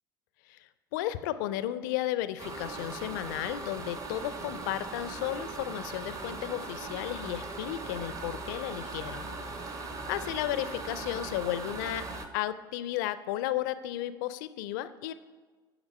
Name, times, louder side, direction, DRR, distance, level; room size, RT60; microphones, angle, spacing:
voice 1, 0.5-9.3 10.1-12.0 12.3-15.1, left 13 dB, 60° left, 14 dB, 0.4 m, -34 dB
sound 1, 2.4-12.3, right 3 dB, 30° right, 0.8 m, -39 dB
7.9 x 5.0 x 5.3 m, 1.4 s
figure-of-eight pair, 65°, 12 cm